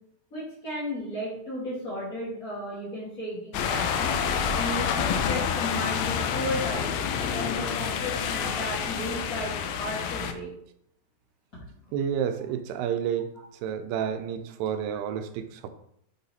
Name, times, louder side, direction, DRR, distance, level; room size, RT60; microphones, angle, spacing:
voice 1, 0.3-4.1 4.5-6.9 7.2-10.5, left 1 dB, 35° left, -10 dB, 1.5 m, -34 dB
sound 1, 3.5-10.3, left 7 dB, 80° left, 2.3 m, -28 dB
voice 2, 11.9-13.3 13.6-15.7, right 8 dB, 85° right, 8 dB, 2.6 m, -30 dB
7.6 x 4.1 x 4.1 m, 0.72 s
omnidirectional pair, 4.6 m